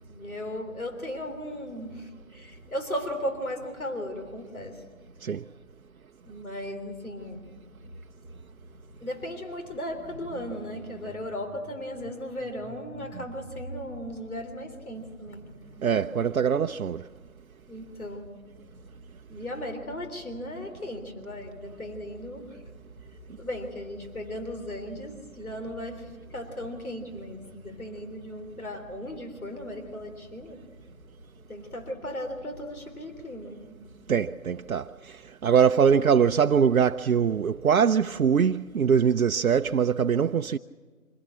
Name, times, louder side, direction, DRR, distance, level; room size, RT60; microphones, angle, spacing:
voice 1, 0.1-4.9 6.2-7.5 9.0-15.5 17.7-18.3 19.3-22.6 23.0-30.6 31.5-33.8, equal, 85° left, 3.7 m, -36 dB
voice 2, 15.8-17.1 34.1-40.6, right 7 dB, 80° right, 0.6 m, -23 dB
25.0 x 16.0 x 8.5 m
figure-of-eight pair, 170°, 42 cm